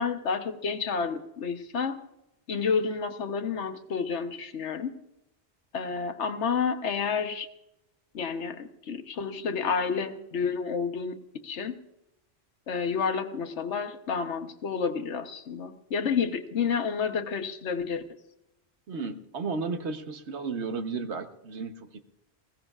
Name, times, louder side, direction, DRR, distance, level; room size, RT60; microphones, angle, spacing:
voice 1, 0.0-2.0 2.5-5.0 5.7-7.5 8.1-11.8 12.7-18.0, left 5 dB, 90° left, 8 dB, 1.3 m, -30 dB
voice 2, 18.9-22.0, right 4 dB, 80° right, 8 dB, 1.3 m, -33 dB
21.0 x 16.5 x 2.4 m, 0.88 s
omnidirectional pair, 1.1 m